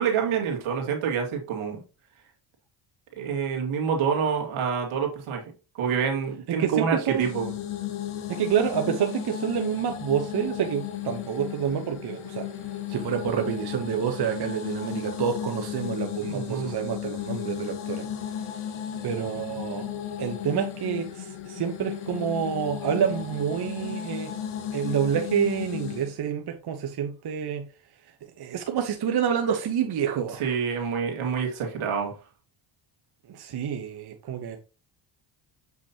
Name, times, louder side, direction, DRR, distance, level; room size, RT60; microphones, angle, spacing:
voice 1, 0.0-1.8 3.2-5.4 5.8-7.5 16.3-16.7 30.4-32.1, right 6 dB, 75° right, 2.4 m, -27 dB
voice 2, 6.6-7.3 8.3-12.5 12.9-18.1 19.0-19.8 20.2-24.3 24.7-27.6 28.4-30.5 33.3-34.6, right 8 dB, 50° right, 1.0 m, -28 dB
sound 1, 7.2-26.1, left 10 dB, 75° left, 1.4 m, -35 dB
7.1 x 6.0 x 2.9 m
supercardioid pair, 75°, 49 cm